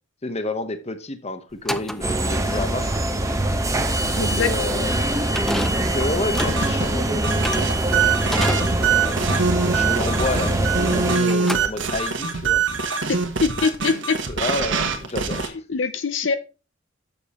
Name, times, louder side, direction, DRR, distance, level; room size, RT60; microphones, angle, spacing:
voice 1, 0.2-3.0 4.3-9.3 9.7-12.6 14.3-15.4, left 2 dB, 35° left, 0.9 m, -30 dB
sound 1, 1.5-11.0 11.2-12.3, equal, ahead, 0.5 m, -32 dB
sound 2, 2.0-11.2, right 1 dB, 15° right, 0.9 m, -23 dB
voice 2, 4.2-4.9 13.1-14.2 15.7-16.4, left 5 dB, 70° left, 0.7 m, -24 dB
sound 3, 6.4-15.5, right 5 dB, 70° right, 1.3 m, -24 dB
7.1 x 7.0 x 4.2 m
head